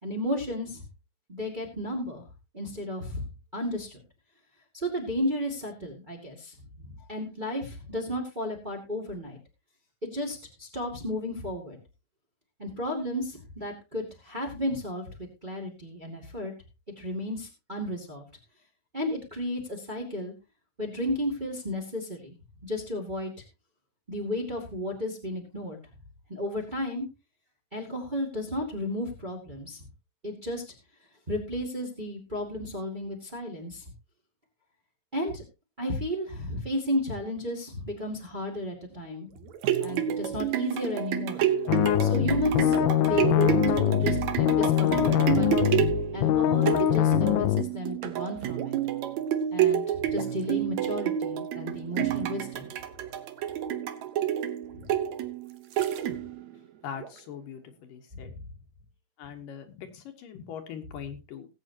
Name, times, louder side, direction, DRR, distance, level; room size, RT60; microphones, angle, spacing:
voice 1, 0.0-0.8 1.3-2.2 2.5-3.2 3.5-3.9 4.7-9.4 10.0-11.8 12.6-15.1 15.4-16.5 17.0-18.3 18.9-20.3 20.8-22.3 22.6-23.3 24.1-25.8 26.3-27.1 27.7-29.8 30.2-30.6 31.3-33.8 35.1-35.4 35.8-39.3 39.8-41.4 42.0-45.5 46.1-48.8 49.5-49.8 50.1-52.7 54.8-54.9 58.1-58.4, left 1 dB, 15° right, 0 dB, 1.7 m, -33 dB
sound 1, 39.4-56.5 57.0-57.1, right 10 dB, 70° right, 1.9 m, -29 dB
sound 2, 41.7-47.6, left 12 dB, 90° left, 2.6 m, -23 dB
voice 2, 56.8-58.3 59.2-61.5, left 8 dB, 70° left, 6 dB, 2.7 m, -41 dB
19.0 x 8.3 x 2.8 m, 0.26 s
omnidirectional pair, 4.2 m